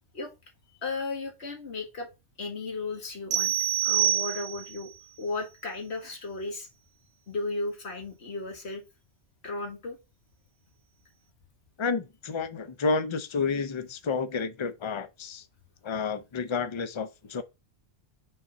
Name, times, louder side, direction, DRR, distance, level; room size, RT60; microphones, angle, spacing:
voice 1, 0.8-2.1 2.4-3.5 3.8-4.9 5.2-6.7 7.3-8.8 9.4-10.0, left 3 dB, 55° left, 1.9 m, -35 dB
sound 1, 3.3-4.8, right 12 dB, 60° right, 0.9 m, -26 dB
voice 2, 11.8-15.4 15.8-17.4, left 4 dB, 35° left, 0.5 m, -30 dB
5.4 x 4.0 x 5.6 m
omnidirectional pair, 1.3 m